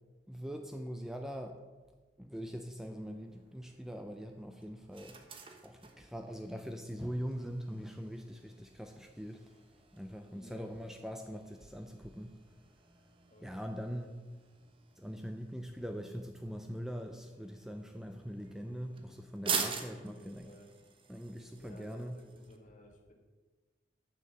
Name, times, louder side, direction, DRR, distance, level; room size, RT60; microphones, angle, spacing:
voice 1, 0.3-1.6 2.2-5.2 5.6-9.5 9.9-12.4 13.4-14.2 15.0-20.5 21.1-22.2, equal, 5° right, 5 dB, 0.4 m, -42 dB
sound 1, 3.0-22.6, right 5 dB, 30° right, 0.9 m, -46 dB
voice 2, 10.3-10.7 13.3-13.6 18.5-18.9 19.9-20.7 21.6-23.1, left 1 dB, 45° left, 2 dB, 1.7 m, -56 dB
6.9 x 6.7 x 7.5 m, 1.3 s
head